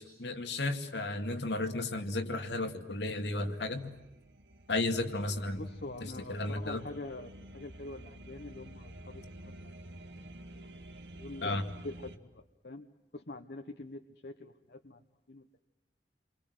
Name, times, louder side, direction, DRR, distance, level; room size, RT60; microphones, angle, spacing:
voice 1, 0.0-3.9 4.7-5.6 6.0-6.8 11.4-11.6, left 2 dB, 85° left, 6 dB, 2.3 m, -33 dB
sound 1, 3.4-12.2, right 1 dB, 80° right, 2.0 m, -50 dB
voice 2, 5.6-9.3 11.2-12.9 13.1-15.0 15.3-15.6, left 2 dB, 65° left, 5 dB, 1.2 m, -45 dB
28.5 x 24.0 x 8.0 m, 0.96 s
head